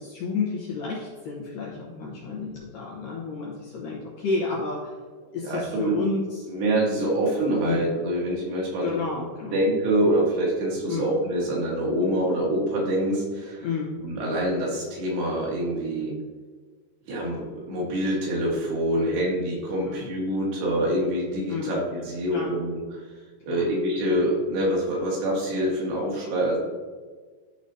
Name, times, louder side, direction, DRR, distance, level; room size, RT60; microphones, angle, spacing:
voice 1, 0.0-4.9 5.3-6.5 7.6-7.8 8.8-9.6 10.9-11.1 13.6-13.9 18.9-19.2 19.9-20.1 21.5-21.8 22.3-22.5 23.5-23.7, left 4 dB, 70° left, -5 dB, 2.1 m, -31 dB
voice 2, 5.4-6.0 6.5-9.2 9.5-13.7 14.0-16.1 17.1-22.8 23.4-26.6, right 1 dB, 70° right, -3 dB, 3.4 m, -25 dB
12.0 x 4.9 x 2.7 m, 1.5 s
omnidirectional pair, 5.1 m